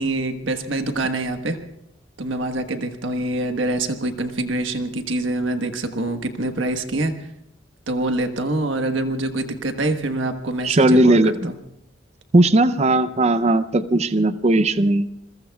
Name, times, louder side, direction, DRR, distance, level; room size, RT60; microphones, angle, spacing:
voice 1, 0.0-1.6 2.2-7.1 7.9-11.6, right 2 dB, 80° right, 7 dB, 1.4 m, -25 dB
voice 2, 10.6-11.5 12.3-15.1, right 2 dB, 35° right, 13 dB, 0.6 m, -17 dB
27.5 x 22.0 x 2.4 m, 0.80 s
head